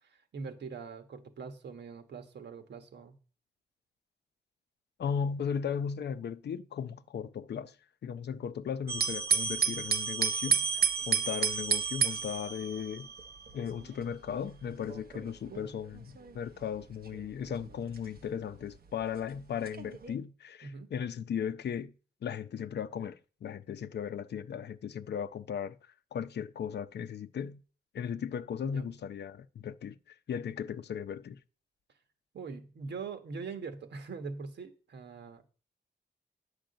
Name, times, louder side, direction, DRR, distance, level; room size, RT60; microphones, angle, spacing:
voice 1, 0.0-3.2 15.5-15.7 20.6-20.9 28.6-28.8 32.3-35.4, right 5 dB, 90° right, 1.5 m, -42 dB
voice 2, 5.0-7.7 8.0-10.7 11.1-13.1 13.5-16.1 16.3-21.9 22.2-25.8 26.1-27.6 27.9-30.0 30.3-31.4, left 7 dB, 80° left, 0.7 m, -36 dB
sound 1, 8.9-19.0 19.6-20.1, right 7 dB, 65° right, 1.1 m, -32 dB
10.5 x 4.9 x 7.9 m
wide cardioid pair, 160°, 17 cm